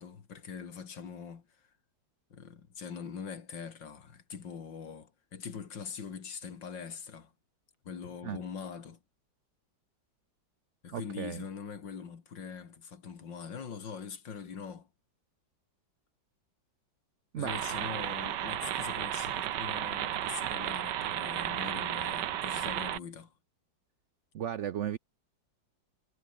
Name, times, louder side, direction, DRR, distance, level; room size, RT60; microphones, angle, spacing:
voice 1, 0.0-1.4 2.3-7.3 7.8-9.0 10.8-14.9 17.4-23.3, left 6 dB, 75° left, 2.9 m, -43 dB
voice 2, 10.9-11.4 17.3-17.6 24.3-25.0, right 10 dB, 90° right, 0.6 m, -35 dB
sound 1, 17.5-23.0, right 11 dB, 70° right, 1.5 m, -33 dB
omnidirectional pair, 2.0 m